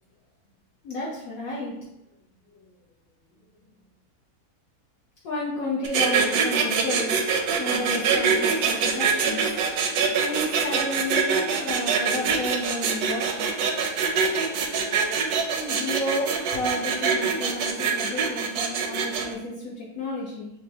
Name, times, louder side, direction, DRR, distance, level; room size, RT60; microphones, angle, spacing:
voice 1, 0.8-1.8 5.2-7.2 7.6-9.4 10.1-13.5 15.5-20.5, left 1 dB, 70° left, -5 dB, 1.1 m, -31 dB
sound 1, 5.8-19.3, right 6 dB, 80° right, 1.1 m, -24 dB
6.0 x 2.1 x 2.7 m, 0.86 s
omnidirectional pair, 1.6 m